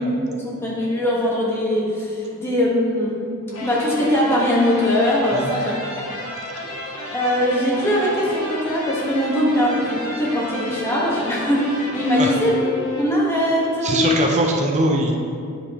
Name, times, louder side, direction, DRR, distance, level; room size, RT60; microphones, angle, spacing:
voice 1, 0.3-3.3 3.6-6.0 7.1-14.2, left 1 dB, 10° left, -5 dB, 1.2 m, -21 dB
sound 1, 3.5-13.5, left 1 dB, 80° left, 1.2 m, -32 dB
voice 2, 13.8-15.1, right 2 dB, 30° right, 1 dB, 0.6 m, -21 dB
9.7 x 5.2 x 2.9 m, 2.4 s
head